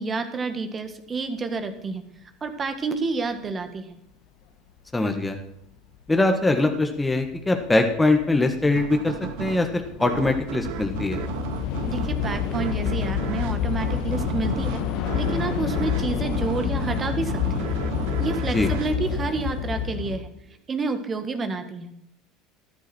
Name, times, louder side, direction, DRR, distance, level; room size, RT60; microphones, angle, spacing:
voice 1, 0.0-2.0 2.4-4.0 11.8-14.8 15.1-17.6 18.2-20.3 20.7-21.9, right 4 dB, 30° right, 8 dB, 1.6 m, -29 dB
voice 2, 4.9-5.4 6.1-9.1 9.4-11.2 18.5-18.7, left 2 dB, 10° left, 4 dB, 1.6 m, -22 dB
Train / Subway metro underground, 6.2-6.3 7.1-7.3 7.6-20.2, left 9 dB, 65° left, 1.3 m, -28 dB
sound 1, 8.7-20.0, right 13 dB, 70° right, 0.6 m, -35 dB
13.5 x 10.5 x 4.5 m, 0.74 s
hypercardioid pair, 80°, 0 cm